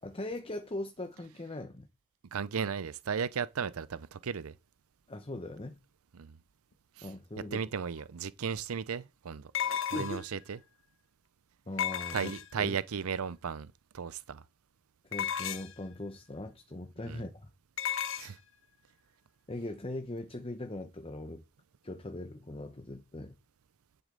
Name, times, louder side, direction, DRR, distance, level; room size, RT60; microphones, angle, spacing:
voice 1, 0.0-1.9 5.1-5.8 7.0-7.6 9.6-10.3 11.7-12.3 12.6-12.8 15.0-17.5 19.5-21.4 21.8-23.4, left 1 dB, 25° left, 0.9 m, -40 dB
voice 2, 2.3-4.5 6.1-6.4 7.0-7.1 7.5-9.5 9.9-10.6 12.1-14.4 17.1-17.2 18.2-18.4, right 6 dB, 70° right, 0.5 m, -35 dB
sound 1, 8.0-8.1 9.5-10.4 11.8-12.7 15.1-15.8 17.8-18.3, left 9 dB, 60° left, 1.0 m, -34 dB
10.5 x 8.4 x 3.8 m
head